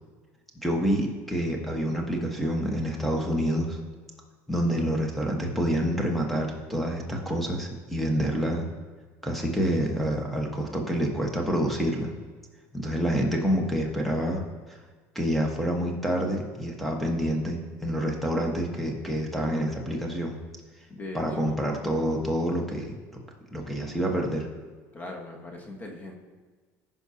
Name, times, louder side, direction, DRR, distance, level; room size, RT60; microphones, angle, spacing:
voice 1, 0.6-3.8 4.5-8.7 9.2-12.1 12.7-14.4 15.1-20.4 21.1-23.0 23.5-24.5, equal, ahead, 0 dB, 1.3 m, -27 dB
voice 2, 20.9-21.8 24.9-26.2, left 2 dB, 25° left, 1 dB, 1.4 m, -40 dB
14.5 x 5.4 x 2.8 m, 1.4 s
supercardioid pair, 120°, 7 cm